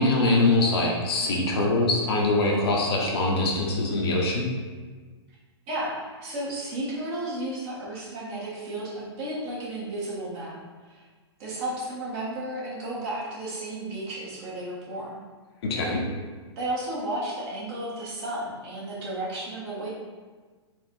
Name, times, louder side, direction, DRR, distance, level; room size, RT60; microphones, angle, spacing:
voice 1, 0.0-4.5 15.7-16.0, left 2 dB, 60° left, -2 dB, 1.0 m, -23 dB
voice 2, 5.7-10.6 10.8-11.1 11.4-15.1 16.5-19.9, right 1 dB, 35° right, -7 dB, 1.4 m, -33 dB
4.4 x 2.5 x 4.5 m, 1.4 s
hypercardioid pair, 145°, 15 cm